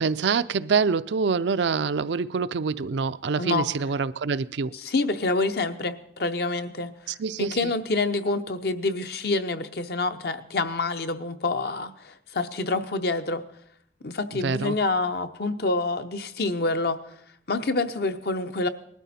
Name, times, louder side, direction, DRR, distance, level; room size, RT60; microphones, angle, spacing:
voice 1, 0.0-4.7 7.2-7.7 14.4-14.8, right 5 dB, 75° right, 0.5 m, -25 dB
voice 2, 4.7-6.9 7.4-13.4 14.0-17.0 17.5-18.7, left 3 dB, 60° left, 0.8 m, -27 dB
19.5 x 13.0 x 4.3 m
head